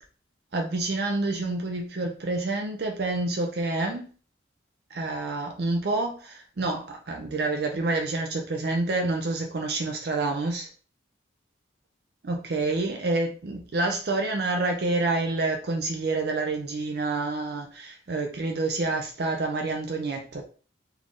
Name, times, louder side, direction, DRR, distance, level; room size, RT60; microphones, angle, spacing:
voice 1, 0.5-4.1 4.9-10.7 12.2-20.4, right 2 dB, 55° right, 0.5 m, -28 dB
3.5 x 3.3 x 2.5 m
head